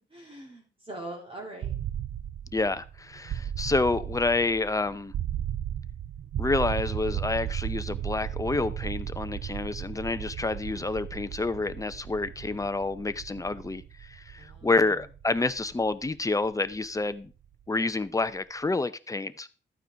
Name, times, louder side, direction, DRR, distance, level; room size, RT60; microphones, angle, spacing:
voice 1, 0.1-1.8 14.4-15.0, right 2 dB, 30° right, 2.6 m, -42 dB
sound 1, 1.6-17.5, right 10 dB, 80° right, 0.5 m, -36 dB
voice 2, 2.5-5.1 6.4-17.3 17.7-19.5, left 3 dB, 15° left, 0.6 m, -28 dB
13.0 x 9.0 x 3.5 m
wide cardioid pair, 130°, 19 cm